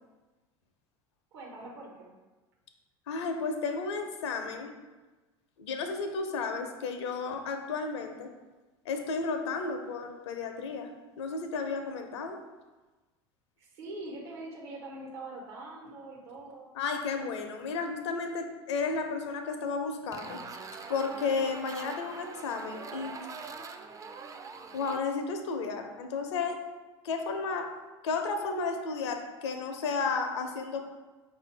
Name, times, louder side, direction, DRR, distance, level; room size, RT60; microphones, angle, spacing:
voice 1, 1.3-2.1 13.6-16.8, right 2 dB, 70° right, -1 dB, 1.1 m, -43 dB
voice 2, 3.1-4.7 5.6-8.3 8.9-10.9 11.2-12.4 16.8-20.4 20.9-23.2 24.7-26.6 27.0-27.7 28.0-30.8, left 4 dB, 75° left, 5 dB, 0.6 m, -33 dB
sound 1, 20.1-25.0, right 4 dB, 25° right, 0.4 m, -43 dB
5.0 x 2.6 x 3.2 m, 1.2 s
hypercardioid pair, 75°, 15 cm